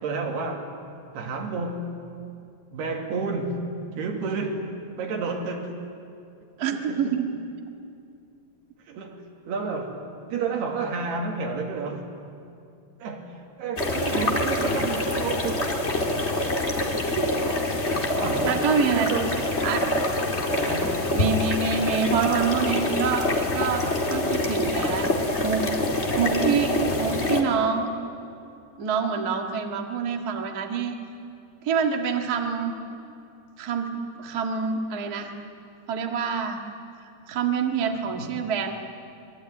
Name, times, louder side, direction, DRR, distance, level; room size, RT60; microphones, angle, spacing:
voice 1, 0.0-0.7 1.1-1.9 2.7-3.6 3.9-4.6 5.0-5.7 6.9-7.2 8.9-10.0 10.3-12.1 13.0-15.7 18.1-18.5 18.9-19.4 20.6-21.0, right 4 dB, 80° right, 2 dB, 4.5 m, -30 dB
voice 2, 6.6-7.3 14.1-14.4 17.0-17.3 18.4-19.1 19.6-19.8 20.5-20.6 21.1-25.1 25.4-25.6 26.2-27.9 28.8-31.0 31.6-32.8 33.6-33.9 34.2-35.3 35.9-36.6 37.3-38.7, right 6 dB, 35° right, 3 dB, 1.5 m, -26 dB
sound 1, 13.8-27.4, left 2 dB, 30° left, 1.3 m, -25 dB
26.0 x 22.5 x 9.6 m, 2.5 s
omnidirectional pair, 4.6 m